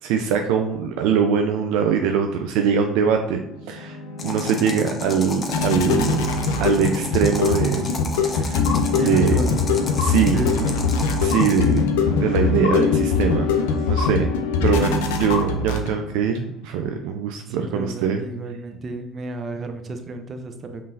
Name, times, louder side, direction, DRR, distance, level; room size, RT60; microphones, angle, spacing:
voice 1, 0.0-6.3 6.6-7.9 8.3-8.7 8.9-9.4 10.0-10.7 11.2-11.8 12.1-13.5 13.9-14.3 14.6-18.2, right 7 dB, 75° right, 5 dB, 0.3 m, -22 dB
sound 1, 3.5-16.2, left 5 dB, 80° left, 0.5 m, -22 dB
sound 2, 4.2-11.8, left 3 dB, 35° left, 0.8 m, -34 dB
voice 2, 9.0-9.6 10.3-10.6 11.3-11.4 11.6-11.8 17.6-20.8, right 2 dB, 40° right, 6 dB, 0.7 m, -31 dB
5.4 x 3.1 x 2.7 m, 0.86 s
hypercardioid pair, 65°, 0 cm